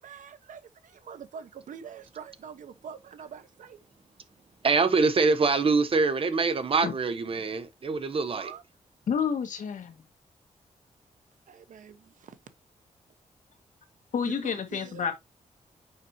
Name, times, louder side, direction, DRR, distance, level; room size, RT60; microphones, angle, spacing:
voice 1, 0.0-3.8 8.1-8.6 11.5-12.4 14.2-15.1, right 7 dB, 90° right, 0.9 m, -45 dB
voice 2, 4.6-8.5, right 4 dB, 45° right, 0.9 m, -24 dB
voice 3, 9.1-10.0 14.1-15.1, left 7 dB, 80° left, 1.3 m, -29 dB
6.5 x 5.3 x 2.8 m
wide cardioid pair, 130°, 13 cm